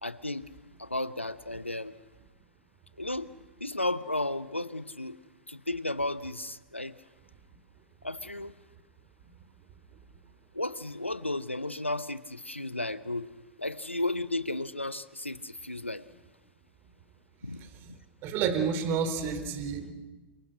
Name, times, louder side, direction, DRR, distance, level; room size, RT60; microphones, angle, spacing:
voice 1, 0.0-0.5 0.8-1.9 3.0-3.3 3.6-5.2 5.5-7.0 8.0-8.5 10.5-13.3 13.6-16.1 17.4-17.7, left 2 dB, 90° left, 16 dB, 1.0 m, -34 dB
voice 2, 18.2-19.9, right 6 dB, 35° right, 9 dB, 3.5 m, -29 dB
29.0 x 25.5 x 6.4 m, 1.2 s
figure-of-eight pair, 95°, 6 cm